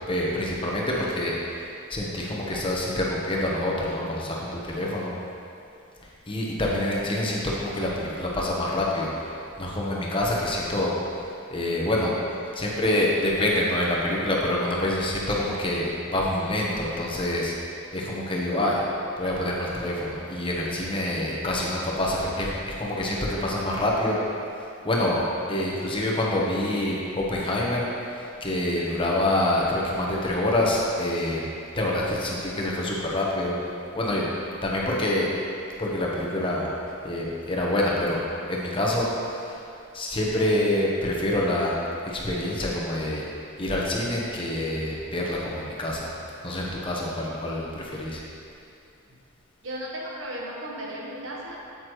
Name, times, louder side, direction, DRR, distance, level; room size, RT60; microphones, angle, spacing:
voice 1, 0.1-1.6 1.9-5.1 6.3-9.3 9.6-10.9 11.5-12.1 12.5-17.5 17.9-18.8 19.2-24.2 24.8-25.2 25.5-27.9 28.4-31.5 31.7-33.6 33.9-34.3 34.6-35.3 35.8-36.7 37.0-38.2 38.5-39.1 39.4-39.6 39.9-41.7 42.1-43.2 43.6-46.1 46.4-48.2, left 1 dB, 25° left, -4 dB, 1.1 m, -26 dB
voice 2, 49.6-51.7, right 1 dB, 70° right, -3 dB, 1.3 m, -35 dB
8.4 x 8.2 x 3.1 m, 2.6 s
head